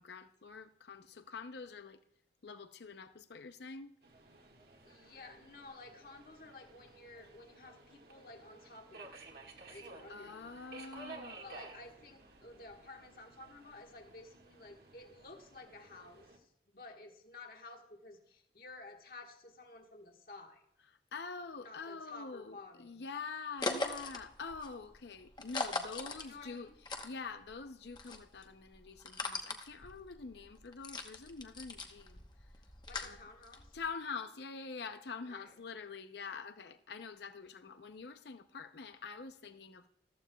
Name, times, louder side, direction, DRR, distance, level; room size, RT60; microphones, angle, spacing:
voice 1, 0.0-2.0 2.4-3.9 10.1-11.6 21.1-26.7 27.0-32.2 33.0-33.2 33.7-39.9, left 4 dB, 75° left, 0.6 m, -45 dB
Subway metro underground, 4.0-16.4, right 3 dB, 60° right, 1.7 m, -55 dB
voice 2, 4.8-9.1 9.6-10.5 11.4-20.7 21.6-23.0 26.2-26.7 32.9-33.8 35.3-35.5, left 2 dB, 55° left, 1.4 m, -53 dB
sound 1, 23.6-27.6 27.9-33.9, left 3 dB, 25° left, 0.9 m, -41 dB
14.5 x 14.0 x 2.3 m
head